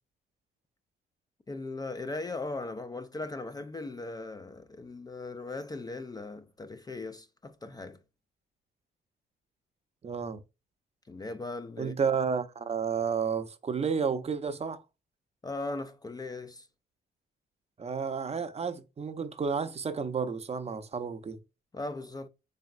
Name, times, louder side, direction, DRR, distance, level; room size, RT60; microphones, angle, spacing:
voice 1, 1.5-8.0 11.1-11.9 15.4-16.7 21.7-22.3, left 2 dB, 20° left, 0.4 m, -38 dB
voice 2, 10.0-10.4 11.8-14.8 17.8-21.4, right 6 dB, 30° right, 0.6 m, -31 dB
4.1 x 3.4 x 2.3 m
cardioid pair, 90°, 20 cm